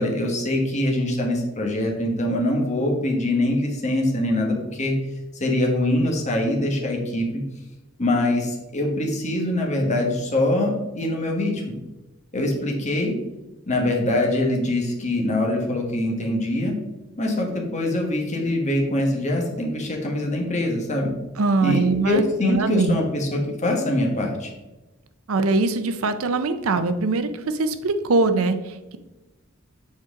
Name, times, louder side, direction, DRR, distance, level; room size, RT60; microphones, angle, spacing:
voice 1, 0.0-4.9 5.4-7.4 8.0-11.7 12.3-13.1 13.7-16.7 17.2-21.1 21.6-24.5, left 1 dB, 35° left, 0 dB, 1.3 m, -23 dB
voice 2, 21.4-23.0 25.3-29.0, right 3 dB, 75° right, 10 dB, 0.5 m, -22 dB
7.4 x 4.5 x 3.7 m, 1.0 s
head